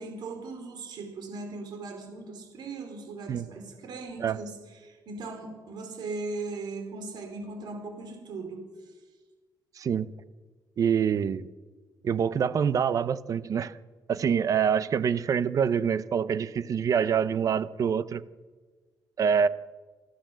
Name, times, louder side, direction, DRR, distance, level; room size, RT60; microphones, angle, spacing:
voice 1, 0.0-4.5 4.8-8.6, right 3 dB, 70° right, 4 dB, 4.9 m, -38 dB
voice 2, 9.8-10.1 10.8-11.5 12.0-13.7 14.1-18.2 19.2-19.5, right 7 dB, 50° right, 15 dB, 0.8 m, -25 dB
27.5 x 13.0 x 7.6 m, 1.4 s
cardioid pair, 135°, 8 cm